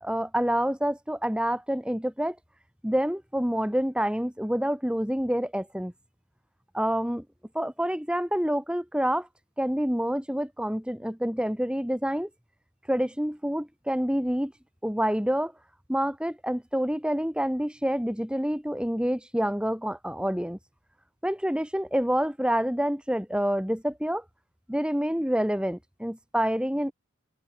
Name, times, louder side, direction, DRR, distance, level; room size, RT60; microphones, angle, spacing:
voice 1, 0.0-2.4 2.8-5.9 6.7-7.2 7.5-9.3 9.6-12.3 12.9-14.5 14.8-15.5 15.9-20.6 21.2-24.2 24.7-26.9, equal, 5° right, 1.8 m, -27 dB
head